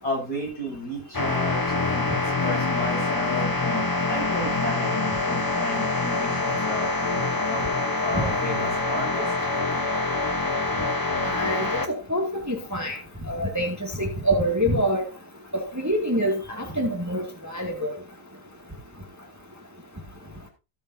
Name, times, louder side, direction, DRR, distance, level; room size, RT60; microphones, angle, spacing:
voice 1, 0.0-2.1 2.4-9.3, left 1 dB, 70° left, -3 dB, 7.1 m, -33 dB
sound 1, 1.1-11.9, left 3 dB, 25° left, 0.4 m, -25 dB
voice 2, 11.2-13.0 13.3-15.1 15.5-17.9, equal, 10° right, 1 dB, 1.9 m, -26 dB
17.0 x 7.2 x 2.7 m, 0.29 s
omnidirectional pair, 1.9 m